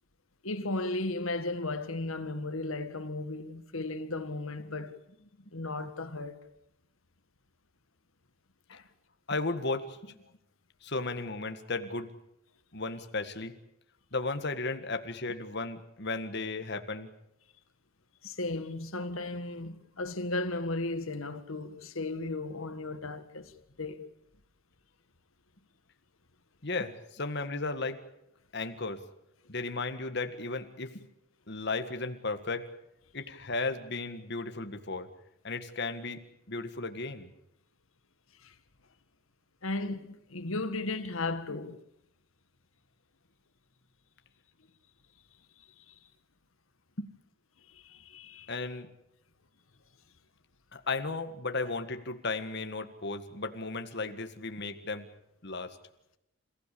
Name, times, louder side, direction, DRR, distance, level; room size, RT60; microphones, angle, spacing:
voice 1, 0.4-4.9 5.5-6.4 8.7-8.8 18.2-23.5 23.8-24.0 38.4-38.5 39.6-41.8 45.8-45.9 47.7-48.5, left 2 dB, 75° left, 1.7 m, -35 dB
voice 2, 9.3-10.2 10.8-12.1 12.7-13.5 14.1-17.1 19.7-19.8 26.6-28.0 28.5-29.0 29.5-31.0 31.5-32.7 33.1-35.1 35.4-36.2 36.5-37.3 47.0-47.1 48.5-48.9 50.7-55.1 55.4-55.8, left 3 dB, 50° left, 1.8 m, -35 dB
28.0 x 16.0 x 8.6 m
head